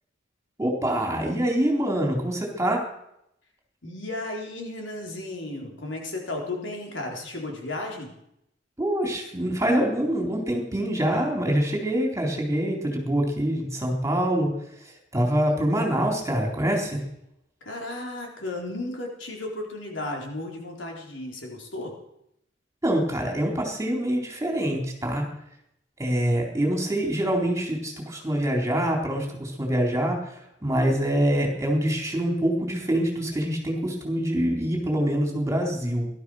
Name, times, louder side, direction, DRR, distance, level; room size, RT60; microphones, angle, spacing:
voice 1, 0.6-2.8 8.8-14.5 15.1-17.0 22.8-25.2 26.0-36.1, right 1 dB, 15° right, 0 dB, 3.9 m, -25 dB
voice 2, 3.8-8.1 17.6-21.9, left 2 dB, 75° left, 0 dB, 4.1 m, -34 dB
18.0 x 12.5 x 6.4 m, 0.78 s
head